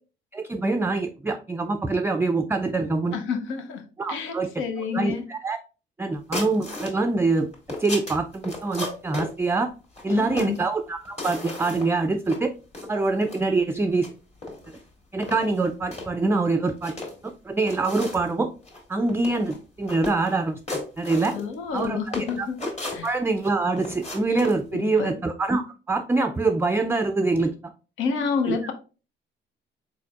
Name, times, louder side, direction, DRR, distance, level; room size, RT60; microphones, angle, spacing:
voice 1, 0.3-3.2 4.0-5.6 6.0-7.5 7.8-9.7 10.0-12.5 12.9-14.1 15.1-16.9 17.2-18.5 18.9-21.4 21.7-22.0 22.4-22.5 23.0-25.6 25.9-27.7 28.5-28.6, right 3 dB, 10° right, 0.3 m, -25 dB
voice 2, 3.1-3.8 4.1-5.3 10.1-10.6 21.3-23.1 24.7-25.2 28.0-28.7, left 6 dB, 85° left, 0.7 m, -29 dB
sound 1, 6.3-6.9 7.4-9.3 10.0-10.6 11.1-12.0 12.3-12.4 12.7-13.4 13.9-14.1 14.4-14.8 15.2-16.1 16.7-17.3 17.7-18.3 18.6-18.8 19.1-19.6 19.9-20.3 20.7-21.9 22.1-23.5 23.8-24.6, left 2 dB, 35° left, 2.2 m, -34 dB
4.4 x 4.3 x 2.3 m
cardioid pair, 90°, 20 cm